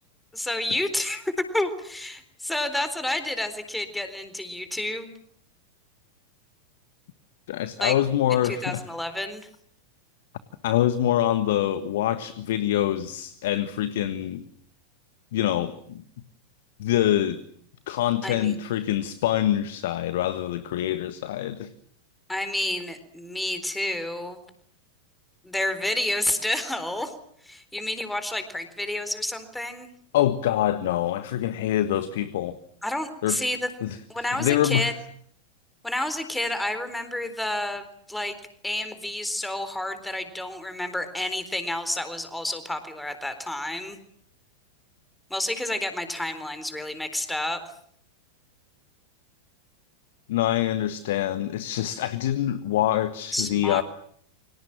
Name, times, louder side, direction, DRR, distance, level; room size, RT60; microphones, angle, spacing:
voice 1, 0.3-5.1 7.8-7.9 8.3-9.5 18.2-18.6 22.3-24.4 25.4-27.1 27.4-29.9 32.8-33.7 34.1-34.9 35.8-38.3 38.6-44.0 45.3-47.6 53.3-53.8, left 1 dB, 5° left, 10 dB, 4.0 m, -30 dB
voice 2, 7.5-8.8 10.6-14.4 15.3-16.0 16.8-17.4 17.9-21.7 30.1-32.6 33.2-33.5 33.8-34.9 50.3-53.8, left 12 dB, 55° left, 13 dB, 1.5 m, -25 dB
29.5 x 25.0 x 7.6 m, 0.64 s
figure-of-eight pair, 90°, 0 cm